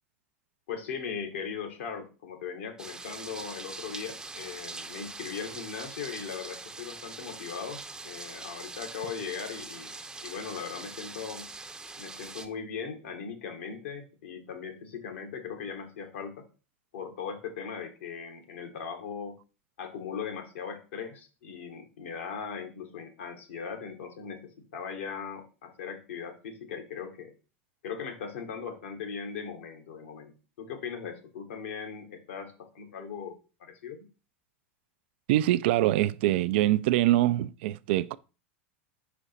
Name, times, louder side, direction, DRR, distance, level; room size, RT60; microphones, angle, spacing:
voice 1, 0.7-11.5 12.0-16.5 16.9-19.4 19.8-27.3 27.8-34.1, left 6 dB, 70° left, 1.5 m, -39 dB
sound 1, 2.8-12.5, right 3 dB, 10° right, 0.6 m, -43 dB
voice 2, 35.3-38.1, right 14 dB, 60° right, 0.3 m, -24 dB
5.1 x 4.9 x 4.2 m
hypercardioid pair, 95°, 7 cm